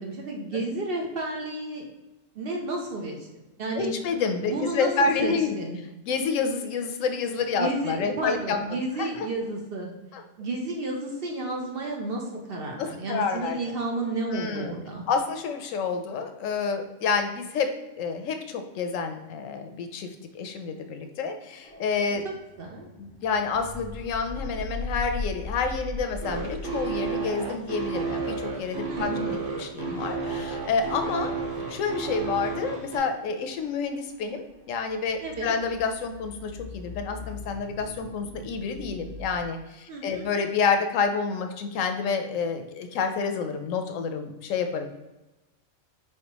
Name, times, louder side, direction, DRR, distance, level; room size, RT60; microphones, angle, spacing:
voice 1, 0.0-1.8 2.3-3.2 3.6-3.9 4.4-5.8 7.6-9.9 10.4-15.0 22.0-22.2 22.6-22.9 28.9-29.4 35.2-35.5 39.9-40.3, right 2 dB, 55° right, 0 dB, 0.8 m, -32 dB
voice 2, 3.7-5.5 6.1-9.3 10.1-10.2 12.8-13.7 14.3-14.8 15.1-17.7 18.0-20.1 20.3-22.2 23.0-31.4 31.7-44.9, left 5 dB, 80° left, 6 dB, 0.9 m, -29 dB
sound 1, 21.6-39.4, left 2 dB, 20° right, 1.1 m, -41 dB
sound 2, 26.2-33.0, right 5 dB, 70° right, 1.3 m, -31 dB
4.5 x 3.3 x 2.9 m, 1.0 s
omnidirectional pair, 1.4 m